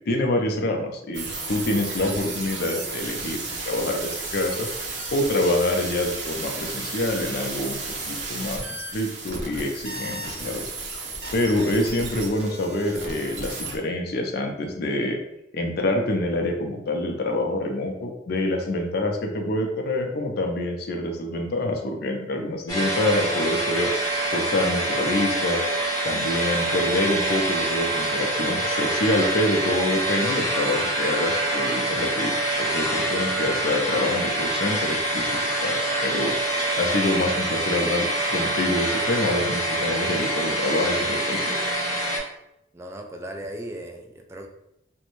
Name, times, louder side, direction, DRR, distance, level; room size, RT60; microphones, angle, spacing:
voice 1, 0.1-4.7 5.1-7.8 8.1-10.7 11.3-15.2 15.5-23.9 24.3-25.6 26.0-36.4 36.8-41.6, left 1 dB, 60° left, 3 dB, 0.5 m, -26 dB
sound 1, 1.1-13.8, right 3 dB, 75° right, 0.6 m, -33 dB
sound 2, 22.7-42.2, right 1 dB, 20° left, 0.9 m, -25 dB
voice 2, 42.7-44.5, right 1 dB, 15° right, 2 dB, 0.3 m, -37 dB
2.5 x 2.1 x 3.0 m, 0.81 s
head